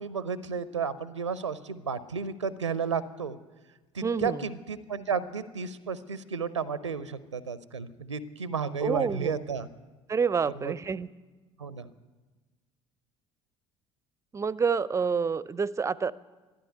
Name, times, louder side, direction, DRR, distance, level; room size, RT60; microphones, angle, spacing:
voice 1, 0.0-3.4 3.9-9.7 10.6-10.7 11.6-11.9, right 6 dB, 85° right, 16 dB, 0.5 m, -32 dB
voice 2, 4.0-4.4 8.8-9.4 10.1-11.1 14.3-16.1, right 5 dB, 20° right, 20 dB, 0.5 m, -28 dB
13.0 x 11.5 x 9.3 m, 1.3 s
figure-of-eight pair, 60°, 15 cm